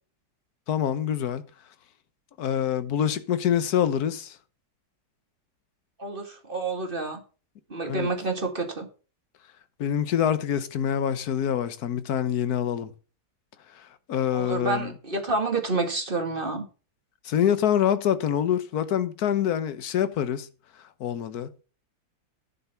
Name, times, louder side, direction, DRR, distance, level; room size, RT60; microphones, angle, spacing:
voice 1, 0.7-1.4 2.4-4.4 7.9-8.1 9.8-12.9 13.7-14.9 17.2-20.5 21.0-21.5, left 9 dB, 65° left, 1.5 m, -25 dB
voice 2, 6.0-7.2 7.7-8.9 14.3-16.7, right 3 dB, 30° right, 2.1 m, -29 dB
11.0 x 6.8 x 5.7 m
omnidirectional pair, 1.9 m